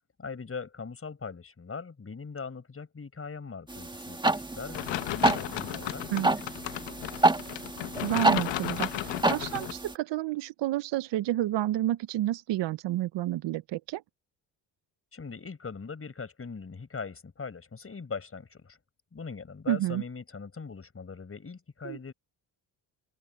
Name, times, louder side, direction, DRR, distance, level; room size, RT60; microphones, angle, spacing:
voice 1, 0.2-6.4 15.1-18.8 19.1-22.1, left 5 dB, 30° left, 6.5 m, -41 dB
sound 1, 3.7-9.9, right 2 dB, 10° right, 1.7 m, -29 dB
sound 2, 4.7-9.7, left 16 dB, 75° left, 1.1 m, -35 dB
voice 2, 8.0-14.0 19.7-20.0 21.8-22.0, right 14 dB, 70° right, 1.0 m, -30 dB
open air
cardioid pair, 90°, 44 cm